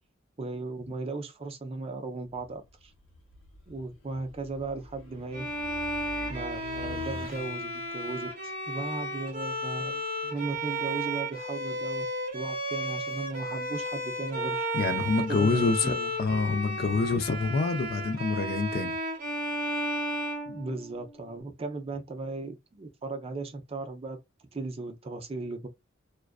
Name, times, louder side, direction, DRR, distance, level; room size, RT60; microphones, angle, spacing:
voice 1, 0.4-2.9 3.7-5.5 6.3-12.1 12.3-14.7 15.3-16.1 20.5-24.2 24.5-25.7, right 3 dB, 30° right, 0.5 m, -37 dB
sound 1, 2.3-7.9, left 2 dB, 80° left, 0.8 m, -45 dB
Bowed string instrument, 5.3-21.2, equal, 45° right, 0.9 m, -33 dB
voice 2, 14.7-15.9 16.2-19.0, left 4 dB, 50° left, 0.4 m, -27 dB
2.4 x 2.2 x 2.3 m
head